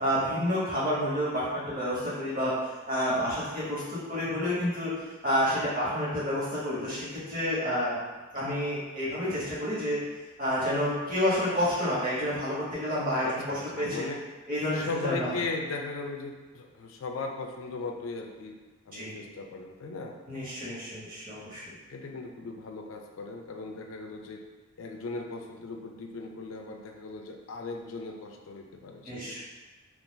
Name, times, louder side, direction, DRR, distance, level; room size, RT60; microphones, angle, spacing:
voice 1, 0.0-2.5 2.9-4.9 5.2-8.0 8.3-10.0 10.4-14.0 14.5-15.3 18.9-19.2 20.3-21.7 29.0-29.4, equal, 45° right, -9 dB, 1.3 m, -29 dB
voice 2, 13.2-14.2 14.7-18.6 18.9-20.2 21.9-24.4 24.8-29.4, left 3 dB, 80° left, 3 dB, 0.4 m, -38 dB
2.6 x 2.4 x 3.8 m, 1.2 s
head